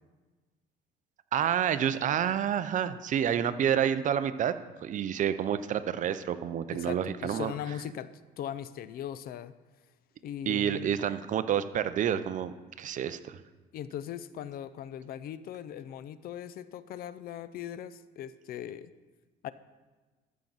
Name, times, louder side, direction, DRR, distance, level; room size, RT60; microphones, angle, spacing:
voice 1, 1.3-4.5 4.8-7.5 10.5-13.4, right 9 dB, 50° right, 13 dB, 0.6 m, -29 dB
voice 2, 6.7-9.5 10.2-11.0 13.7-18.9 19.4-19.5, left 10 dB, 60° left, 15 dB, 0.5 m, -39 dB
13.0 x 7.4 x 4.0 m, 1.3 s
cardioid pair, 110°, 17 cm